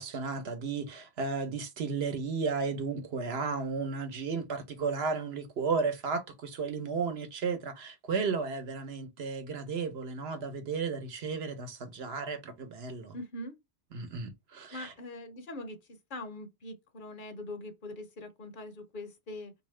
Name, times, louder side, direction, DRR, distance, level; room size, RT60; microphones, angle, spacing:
voice 1, 0.0-13.2 13.9-14.9, right 5 dB, 75° right, 1.0 m, -34 dB
voice 2, 13.1-13.6 14.7-19.5, left 1 dB, 55° left, 0.8 m, -42 dB
3.6 x 2.7 x 3.1 m
omnidirectional pair, 1.1 m